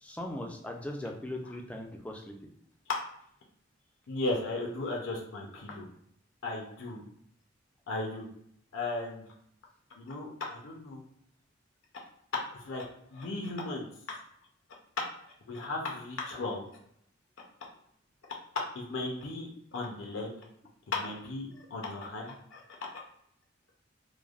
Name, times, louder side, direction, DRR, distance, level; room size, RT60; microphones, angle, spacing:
voice 1, 0.0-2.4, left 1 dB, 5° left, 2 dB, 0.3 m, -39 dB
voice 2, 4.1-5.9 6.4-7.0 7.9-8.3 8.7-9.3 10.0-11.0 12.3-14.2 15.0-15.1 15.5-16.7 18.8-20.3 20.9-22.6, left 2 dB, 90° left, -1 dB, 0.6 m, -36 dB
3.1 x 2.0 x 2.4 m, 0.69 s
head